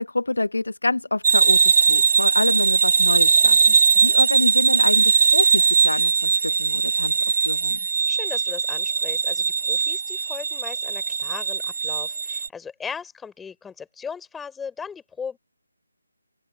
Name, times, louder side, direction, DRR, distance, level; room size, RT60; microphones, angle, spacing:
voice 1, 0.0-7.1 7.4-7.8, left 2 dB, 65° left, 1.0 m, -27 dB
sound 1, 1.2-12.5, right 5 dB, 45° right, 0.6 m, -20 dB
voice 2, 8.1-15.4, left 6 dB, 5° left, 3.4 m, -37 dB
open air
figure-of-eight pair, 150°, 0 cm